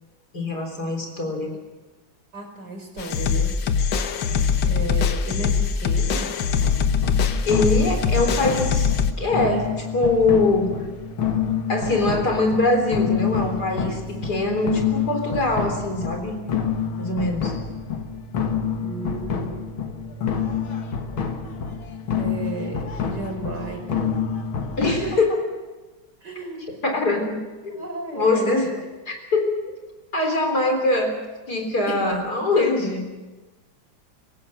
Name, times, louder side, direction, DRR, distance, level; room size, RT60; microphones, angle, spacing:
voice 1, 0.3-1.6 4.2-4.5 7.4-8.9 9.2-10.7 11.7-16.4 17.0-17.6 24.8-25.4 26.8-27.8 28.1-28.8 29.1-29.6 30.1-31.2 31.5-33.1, left 2 dB, 50° left, 4 dB, 4.3 m, -23 dB
voice 2, 2.3-3.6 4.7-6.3 18.8-19.6 22.1-24.2 24.8-25.1 26.2-26.7 27.7-28.6 31.9-32.0, right 3 dB, 55° right, 3 dB, 5.2 m, -33 dB
sound 1, 3.0-9.1, left 6 dB, 70° left, 1.8 m, -22 dB
sound 2, 6.6-25.2, left 6 dB, 90° left, 2.4 m, -28 dB
26.5 x 16.5 x 7.8 m, 1.2 s
omnidirectional pair, 2.2 m